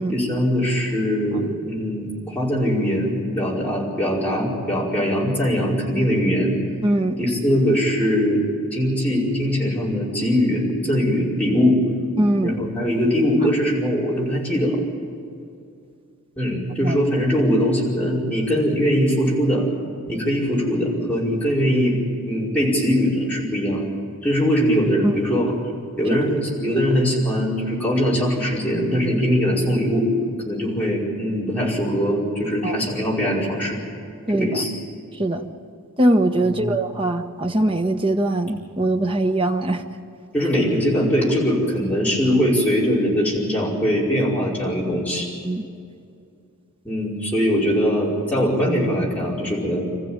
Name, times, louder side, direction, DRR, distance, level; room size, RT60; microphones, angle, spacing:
voice 1, 0.1-6.6 7.2-8.4 8.7-11.8 12.4-14.8 16.4-19.6 20.1-22.0 22.3-23.9 24.2-25.5 26.0-30.1 30.4-33.8 34.3-34.7 36.5-36.7 40.3-45.3 46.8-49.9, equal, 5° left, -6 dB, 5.2 m, -21 dB
voice 2, 6.8-7.2 12.2-12.6 16.8-17.0 25.0-25.1 32.6-32.8 34.3-34.6 35.2-35.4 36.0-39.8 45.4-45.6, right 1 dB, 25° right, 5 dB, 1.2 m, -21 dB
27.5 x 15.0 x 8.9 m, 2.4 s
head